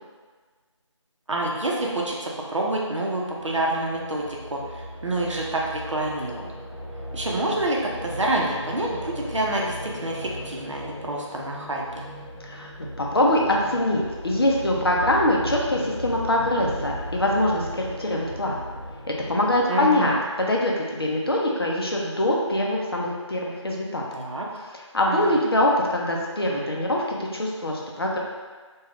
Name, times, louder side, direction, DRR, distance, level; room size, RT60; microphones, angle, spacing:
voice 1, 1.3-6.5 7.1-12.1 19.7-20.2 24.1-24.5 25.1-25.4, right 1 dB, 70° right, -2 dB, 0.6 m, -27 dB
sound 1, 3.3-20.2, equal, 30° left, 1.2 m, -37 dB
voice 2, 12.4-18.6 19.1-24.0 24.9-28.2, left 1 dB, 50° left, -2 dB, 0.5 m, -23 dB
3.2 x 2.3 x 2.4 m, 1.4 s
figure-of-eight pair, 175°, 16 cm